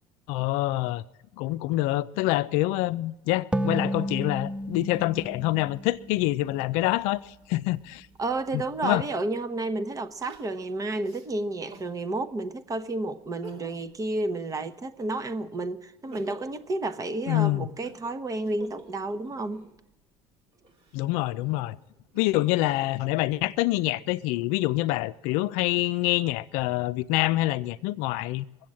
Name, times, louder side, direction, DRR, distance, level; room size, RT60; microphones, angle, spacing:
voice 1, 0.3-1.0 1.4-8.1 8.5-9.0 17.3-17.7 20.9-21.8 22.1-28.4, left 18 dB, 75° left, 0.5 m, -26 dB
sound 1, 3.5-7.0, equal, 10° right, 0.5 m, -32 dB
voice 2, 8.2-19.6, right 2 dB, 30° right, 1.0 m, -31 dB
Crying sobbing, 10.3-12.0 12.5-12.6 13.2-13.9 14.3-15.4 15.8-19.8 20.5-22.6 23.2-24.0, right 3 dB, 60° right, 2.8 m, -50 dB
20.5 x 7.8 x 7.6 m
supercardioid pair, 85°, 12 cm